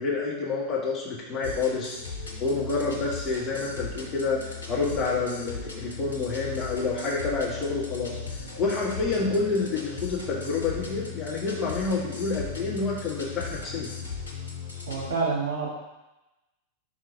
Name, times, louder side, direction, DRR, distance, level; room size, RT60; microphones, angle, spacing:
voice 1, 0.0-2.0 2.4-8.2 8.6-13.9, left 4 dB, 20° left, -6 dB, 1.7 m, -28 dB
sound 1, 1.4-15.1, left 5 dB, 75° left, 1.1 m, -37 dB
voice 2, 14.9-15.7, right 4 dB, 65° right, -4 dB, 1.7 m, -27 dB
5.0 x 4.5 x 4.5 m, 0.99 s
figure-of-eight pair, 90°, 0 cm